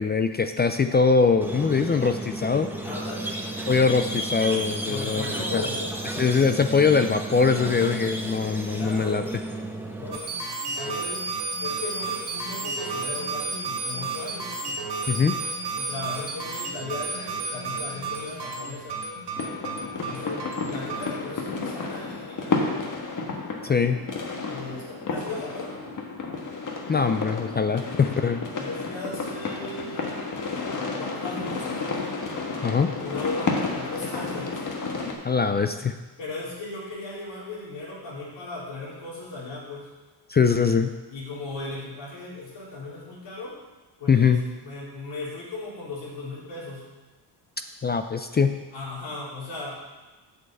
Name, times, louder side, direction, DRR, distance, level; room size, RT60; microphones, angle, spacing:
voice 1, 0.0-2.7 3.7-5.3 5.5-5.6 6.2-9.2 15.1-15.4 23.6-24.0 26.9-28.4 32.6-32.9 35.2-36.0 40.3-40.9 44.1-44.4 47.8-48.6, left 5 dB, 25° left, 8 dB, 0.3 m, -22 dB
Squeak, 1.4-10.2, right 1 dB, 5° right, 1.0 m, -33 dB
voice 2, 2.8-3.7 4.8-5.9 8.7-9.3 10.0-10.3 10.8-11.2 11.6-14.8 15.7-19.0 19.8-23.0 24.4-25.8 28.6-30.2 31.0-32.0 33.0-34.6 36.2-39.9 41.1-43.5 44.0-46.9 48.7-49.9, left 2 dB, 70° left, -6 dB, 3.7 m, -37 dB
sound 1, 10.1-21.2, right 3 dB, 65° right, 2.4 m, -32 dB
sound 2, 19.4-35.1, left 4 dB, 45° left, 1.4 m, -31 dB
8.0 x 5.4 x 7.6 m, 1.2 s
cardioid pair, 125°, 45 cm